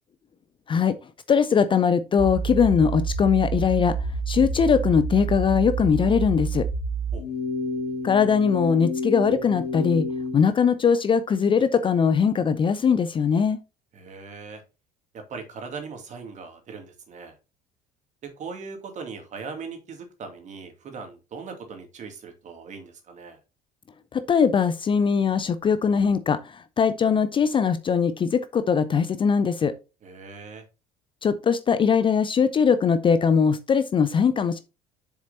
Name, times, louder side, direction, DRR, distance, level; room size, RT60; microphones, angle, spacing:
voice 1, 1.3-4.0 4.3-6.7 8.0-10.1 10.3-13.6 24.1-26.4 26.8-29.7 31.2-34.6, left 6 dB, 25° left, 0.6 m, -21 dB
sound 1, 2.2-7.2, right 5 dB, 70° right, 2.7 m, -28 dB
sound 2, 7.1-10.4, left 3 dB, 75° left, 1.6 m, -30 dB
voice 2, 13.9-14.6 15.1-17.4 18.2-23.4 30.0-30.6, right 5 dB, 40° right, 2.4 m, -39 dB
7.4 x 7.2 x 2.7 m
figure-of-eight pair, 60°, 20 cm